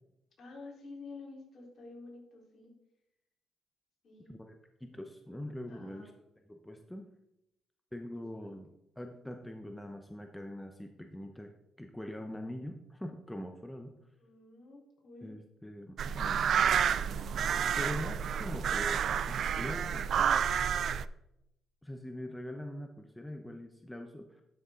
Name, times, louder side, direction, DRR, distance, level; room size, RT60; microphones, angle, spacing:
voice 1, 0.4-2.7 4.0-4.4 5.7-6.1 8.3-8.6 14.2-15.3, left 3 dB, 55° left, -2 dB, 3.9 m, -50 dB
voice 2, 4.8-6.1 6.5-7.1 7.9-8.7 9.0-11.5 11.8-14.0 15.2-16.5 17.7-20.3 21.8-24.4, left 1 dB, 5° left, 4 dB, 0.8 m, -43 dB
sound 1, 16.0-21.1, right 8 dB, 60° right, 0.3 m, -30 dB
12.0 x 6.4 x 3.8 m, 0.86 s
cardioid pair, 90°, 0 cm